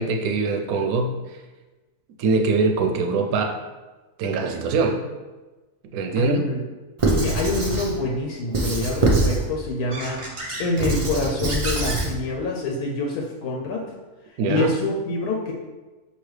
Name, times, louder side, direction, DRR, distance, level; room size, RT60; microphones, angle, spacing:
voice 1, 0.0-1.4 2.2-3.6 4.2-5.0 5.9-6.4 14.4-14.7, right 3 dB, 75° right, 4 dB, 1.0 m, -23 dB
voice 2, 6.1-6.6 7.0-10.2 10.6-13.8 14.5-15.5, left 2 dB, 85° left, -1 dB, 1.2 m, -26 dB
Squeak / Writing, 7.0-7.9 8.5-9.4 9.9-12.1, right 2 dB, 55° right, 0.3 m, -23 dB
5.5 x 2.9 x 3.2 m, 1.2 s
omnidirectional pair, 1.6 m